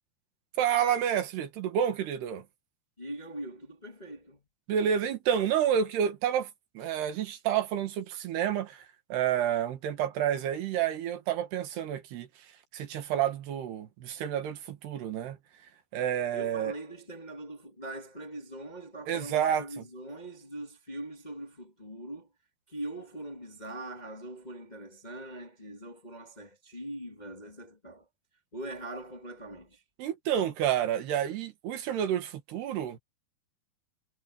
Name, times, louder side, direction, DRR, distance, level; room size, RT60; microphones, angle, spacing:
voice 1, 0.6-2.4 4.7-6.5 6.8-8.9 9.1-12.3 12.7-15.4 15.9-16.7 19.1-19.8 30.0-33.0, right 9 dB, 80° right, 4.0 m, -29 dB
voice 2, 3.0-4.4 16.3-22.3 22.7-28.0 28.5-29.8, right 1 dB, 15° left, 1.6 m, -42 dB
omnidirectional pair, 4.6 m